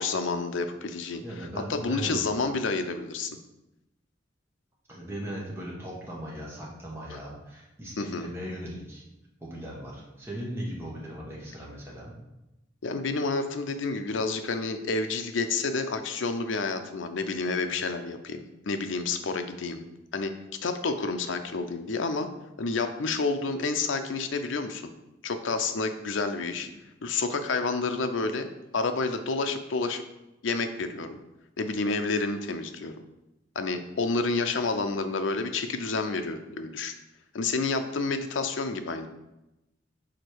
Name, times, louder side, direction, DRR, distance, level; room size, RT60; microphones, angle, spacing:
voice 1, 0.0-3.3 7.1-7.2 8.0-8.3 12.8-19.8 20.1-20.3 20.6-22.3 22.6-24.8 25.2-26.7 27.0-28.5 28.7-30.0 30.4-31.2 31.6-32.9 33.6-36.9 37.3-39.1, left 3 dB, 80° left, 7 dB, 0.6 m, -29 dB
voice 2, 1.2-2.2 4.9-9.0 9.4-12.2, equal, 15° right, -4 dB, 1.2 m, -38 dB
5.0 x 4.2 x 4.7 m, 0.95 s
head